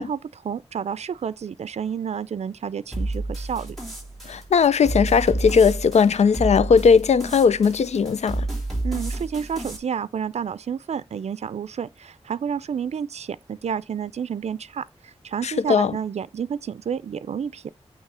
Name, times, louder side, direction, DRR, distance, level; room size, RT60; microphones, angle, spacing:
voice 1, 0.0-3.8 8.8-17.7, right 7 dB, 80° right, 0.5 m, -30 dB
sound 1, 2.9-9.8, right 2 dB, ahead, 3.5 m, -30 dB
voice 2, 4.3-8.5 15.4-15.9, left 6 dB, 80° left, 0.5 m, -18 dB
8.9 x 3.2 x 5.5 m
wide cardioid pair, 75°, 11 cm